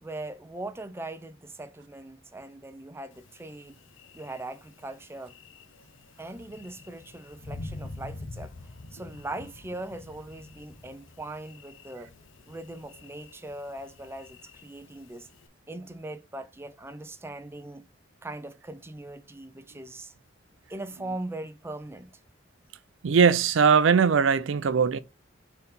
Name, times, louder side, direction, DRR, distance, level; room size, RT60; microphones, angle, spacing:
voice 1, 0.0-3.8 4.1-5.3 6.2-12.1 12.5-15.3 15.7-17.8 18.2-20.1 20.7-22.1, right 2 dB, 10° right, 0.5 m, -40 dB
Thunder, 3.1-15.5, left 2 dB, 75° left, 0.8 m, -47 dB
voice 2, 23.0-25.0, right 6 dB, 70° right, 0.4 m, -20 dB
4.5 x 4.0 x 5.1 m
head